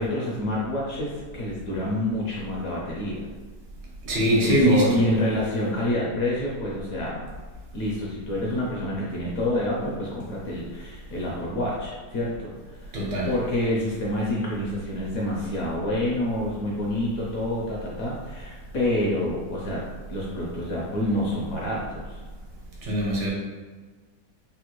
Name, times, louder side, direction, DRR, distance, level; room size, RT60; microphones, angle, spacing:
voice 1, 0.0-3.2 4.3-7.2 7.7-12.9 13.2-22.2, left 1 dB, 65° left, -4 dB, 0.9 m, -28 dB
voice 2, 4.0-5.0 12.9-13.3 22.8-23.3, right 1 dB, 70° right, -3 dB, 1.3 m, -22 dB
3.4 x 2.2 x 2.9 m, 1.4 s
omnidirectional pair, 1.9 m